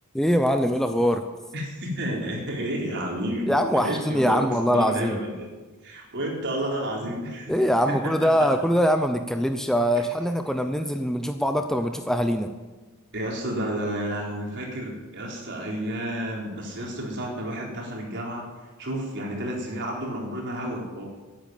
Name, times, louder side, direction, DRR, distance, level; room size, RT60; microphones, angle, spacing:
voice 1, 0.1-1.2 3.5-5.2 7.5-12.5, equal, ahead, 7 dB, 0.7 m, -23 dB
voice 2, 1.5-5.5 5.8-7.5 13.1-18.5 18.8-21.1, right 1 dB, 55° right, -1 dB, 4.2 m, -31 dB
13.5 x 10.0 x 9.2 m, 1.3 s
head